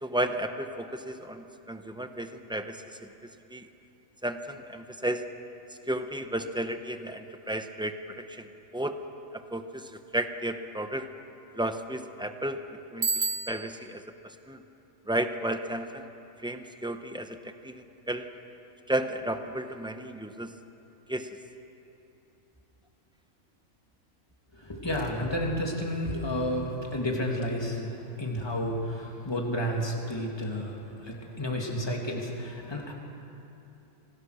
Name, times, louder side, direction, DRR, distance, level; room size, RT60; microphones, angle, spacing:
voice 1, 0.0-3.1 3.5-3.7 4.2-5.3 5.9-8.5 8.7-9.0 9.3-11.1 11.6-12.6 12.9-14.6 15.1-16.1 16.4-18.3 18.9-20.5 21.1-21.3, right 1 dB, 5° right, 7 dB, 0.8 m, -33 dB
Bicycle bell, 13.0-14.0, right 5 dB, 45° right, 0.6 m, -30 dB
voice 2, 24.5-32.9, equal, 20° left, 0 dB, 2.5 m, -31 dB
26.5 x 19.0 x 6.6 m, 2.9 s
omnidirectional pair, 1.4 m